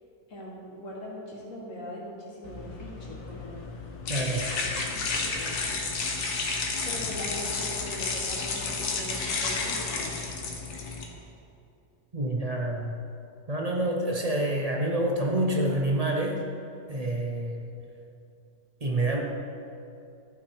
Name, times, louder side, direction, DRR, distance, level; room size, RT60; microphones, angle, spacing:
voice 1, 0.3-3.6 4.0-6.2 6.8-10.3, left 1 dB, 50° left, -3 dB, 2.1 m, -41 dB
sound 1, 2.4-11.0, left 4 dB, 65° left, 1.6 m, -31 dB
voice 2, 4.1-4.5 12.1-13.0 13.5-16.4 16.9-17.7 18.8-19.2, right 1 dB, 35° right, 0 dB, 0.6 m, -27 dB
12.5 x 5.9 x 4.9 m, 2.6 s
omnidirectional pair, 1.8 m